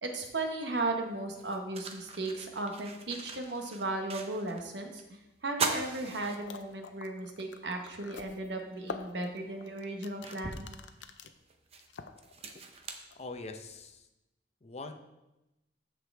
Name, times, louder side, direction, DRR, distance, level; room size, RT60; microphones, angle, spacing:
voice 1, 0.0-10.7, right 2 dB, 75° right, 3 dB, 1.3 m, -36 dB
sound 1, 0.7-0.8 1.3-4.7 5.0-5.1 5.5-7.0 7.4-7.5 8.9-9.0 9.6-13.8, right 4 dB, 35° right, 0.7 m, -40 dB
sound 2, 6.4-11.3 11.7-12.5 12.9-13.2, left 4 dB, 80° left, 0.6 m, -46 dB
voice 2, 13.1-14.1 14.6-14.9, left 3 dB, 35° left, 6 dB, 0.7 m, -43 dB
14.0 x 4.9 x 3.4 m, 0.95 s
head